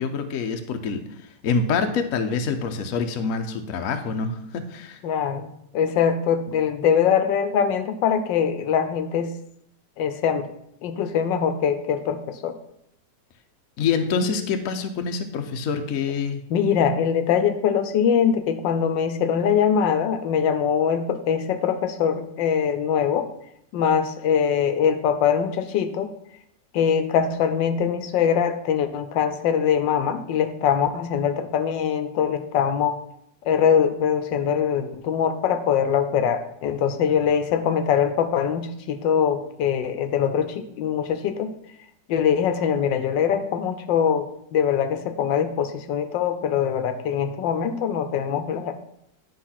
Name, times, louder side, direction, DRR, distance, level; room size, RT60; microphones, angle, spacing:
voice 1, 0.0-5.0 13.8-16.4, left 5 dB, 60° left, 6 dB, 1.0 m, -26 dB
voice 2, 5.0-9.3 10.0-10.5 10.8-12.5 16.5-23.3 23.7-26.1 26.7-33.0 33.5-41.5 42.1-48.7, left 7 dB, 85° left, 9 dB, 1.4 m, -22 dB
10.0 x 3.7 x 5.7 m, 0.74 s
omnidirectional pair, 2.0 m